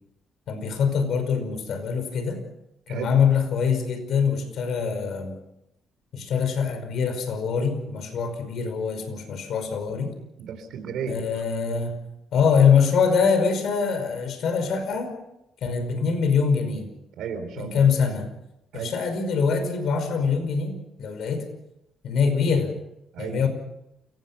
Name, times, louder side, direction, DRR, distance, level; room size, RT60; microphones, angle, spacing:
voice 1, 0.5-2.4 2.9-5.3 6.1-10.1 11.1-12.0 12.3-15.1 15.6-16.9 17.6-18.3 18.7-20.7 21.0-21.5 22.0-22.7 23.2-23.5, left 6 dB, 70° left, 8 dB, 5.2 m, -23 dB
voice 2, 10.4-11.2 17.2-17.9 18.7-18.9 23.1-23.4, right 7 dB, 80° right, 6 dB, 3.8 m, -33 dB
29.0 x 17.5 x 5.8 m, 0.82 s
cardioid pair, 90°, 0 cm